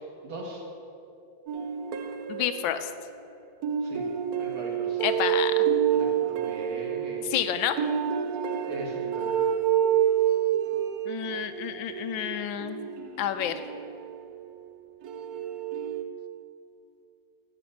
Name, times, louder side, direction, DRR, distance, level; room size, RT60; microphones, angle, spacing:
voice 1, 0.2-0.6 3.8-4.1 4.4-5.0 5.9-7.3 8.7-9.4, right 1 dB, 85° right, -1 dB, 2.7 m, -39 dB
sound 1, 1.5-3.2 3.6-14.5 15.0-16.0, right 9 dB, 65° right, 1.0 m, -28 dB
voice 2, 2.3-2.9 5.0-5.7 7.2-7.8 11.1-12.9 13.2-13.5, left 10 dB, 85° left, 10 dB, 1.4 m, -29 dB
14.5 x 5.2 x 7.2 m, 2.7 s
omnidirectional pair, 2.1 m